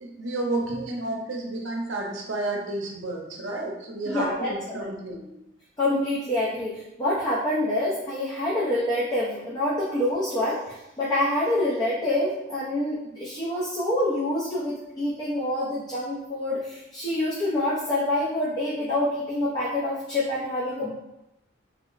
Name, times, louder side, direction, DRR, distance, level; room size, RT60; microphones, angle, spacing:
voice 1, 0.0-5.3, right 2 dB, 75° right, 1 dB, 0.6 m, -31 dB
voice 2, 4.1-4.8 5.8-20.9, left 1 dB, 20° left, -8 dB, 0.5 m, -26 dB
3.1 x 2.0 x 3.8 m, 0.91 s
head